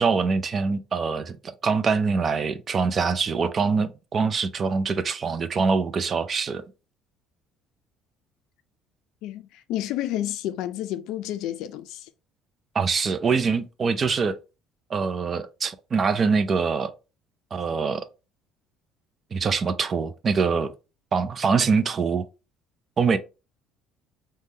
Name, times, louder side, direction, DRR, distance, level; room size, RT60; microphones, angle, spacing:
voice 1, 0.0-1.4 1.6-6.6 12.7-14.4 14.9-16.9 17.5-18.1 19.3-20.7 21.1-22.2 23.0-23.2, right 5 dB, 30° right, 0.3 m, -24 dB
voice 2, 9.2-12.1, left 13 dB, 70° left, 0.4 m, -30 dB
3.5 x 2.2 x 2.7 m
cardioid pair, 125°, 0 cm